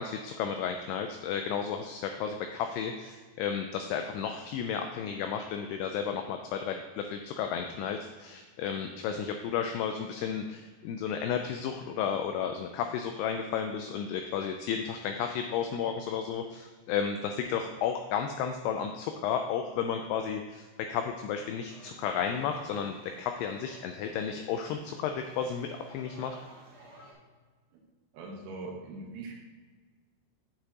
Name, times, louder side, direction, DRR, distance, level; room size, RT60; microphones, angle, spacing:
voice 1, 0.0-26.4, left 7 dB, 85° left, 5 dB, 2.4 m, -33 dB
sound 1, 21.7-27.1, right 1 dB, 40° right, 2.1 m, -54 dB
voice 2, 28.1-29.3, right 3 dB, 75° right, 0 dB, 3.2 m, -41 dB
8.9 x 7.7 x 2.9 m, 1.4 s
omnidirectional pair, 5.1 m